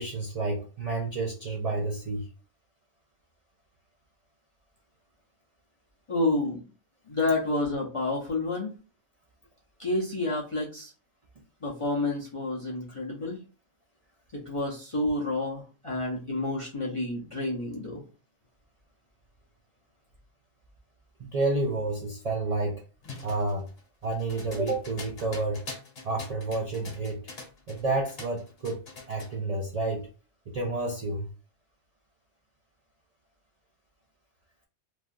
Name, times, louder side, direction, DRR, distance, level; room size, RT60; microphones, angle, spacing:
voice 1, 0.0-2.3 21.2-22.8 23.2-23.7 24.0-25.6 26.0-27.2 27.7-28.8 29.1-30.1 30.5-31.3, right 2 dB, 50° right, 0.4 m, -30 dB
voice 2, 6.1-6.6 7.1-8.7 9.8-10.9 11.6-13.4 14.3-18.0, left 2 dB, 35° left, 0.5 m, -29 dB
sound 1, 23.0-27.8 28.1-29.3, left 3 dB, 55° left, 1.2 m, -44 dB
3.2 x 2.3 x 2.5 m
omnidirectional pair, 1.3 m